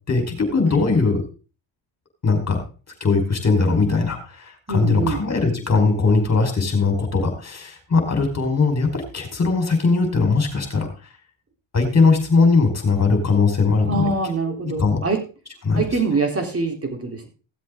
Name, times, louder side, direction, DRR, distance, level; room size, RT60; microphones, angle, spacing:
voice 1, 0.1-1.2 2.2-2.6 3.0-10.9 11.7-14.1 14.8-15.0 15.6-15.8, left 4 dB, 35° left, 4 dB, 4.9 m, -19 dB
voice 2, 4.7-5.2 13.9-15.2 15.7-17.3, right 3 dB, 30° right, 3 dB, 3.9 m, -24 dB
16.0 x 7.7 x 3.9 m, 0.34 s
cardioid pair, 90°, 47 cm